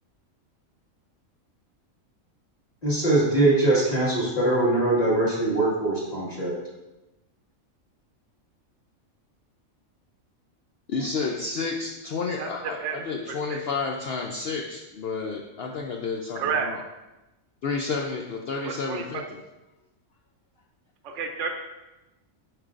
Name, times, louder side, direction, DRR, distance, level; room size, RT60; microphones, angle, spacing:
voice 1, 2.8-6.5, right 2 dB, 30° left, -7 dB, 1.8 m, -22 dB
voice 2, 10.9-16.8 17.6-19.4, left 4 dB, 60° left, 1 dB, 0.7 m, -31 dB
voice 3, 12.4-13.0 13.3-13.6 16.4-16.7 18.6-19.2 21.0-21.5, right 6 dB, 65° right, 3 dB, 0.9 m, -31 dB
9.0 x 4.8 x 2.5 m, 1.0 s
omnidirectional pair, 1.4 m